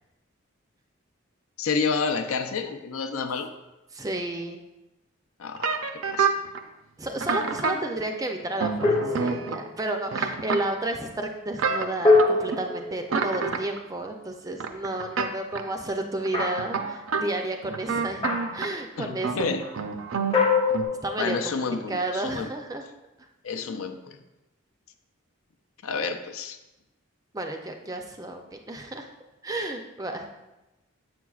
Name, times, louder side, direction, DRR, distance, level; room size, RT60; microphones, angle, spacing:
voice 1, 1.6-3.5 5.4-6.3 19.0-19.7 21.2-22.5 23.4-24.2 25.8-26.6, left 5 dB, 80° left, 7 dB, 0.5 m, -29 dB
voice 2, 3.9-4.6 7.0-18.3 18.5-19.5 21.0-22.8 27.3-29.1 29.4-30.3, right 2 dB, 15° right, 4 dB, 0.4 m, -32 dB
sound 1, 5.6-6.6 7.2-7.8 8.6-9.6 10.1-10.6 11.6-12.6 13.1-13.8 14.6-15.3 15.5-15.6 16.2-17.2 17.6-18.7 19.2-20.4 20.7-20.8, right 5 dB, 70° right, 0.5 m, -28 dB
sound 2, 8.8-9.8 12.0-13.8 16.3-16.8 18.2-18.7 20.3-21.6, left 3 dB, 25° left, 0.7 m, -24 dB
7.5 x 6.0 x 2.3 m, 1.0 s
head